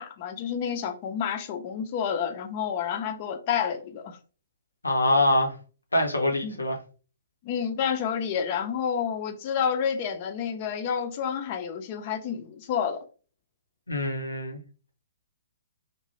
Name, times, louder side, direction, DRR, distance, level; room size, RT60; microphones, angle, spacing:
voice 1, 0.0-4.2 6.4-6.6 7.4-13.0, left 7 dB, 35° left, 0.5 m, -29 dB
voice 2, 4.8-5.6 5.9-6.8 13.9-14.6, left 1 dB, 75° left, 0.7 m, -24 dB
2.7 x 2.2 x 3.1 m
figure-of-eight pair, 120°, 0 cm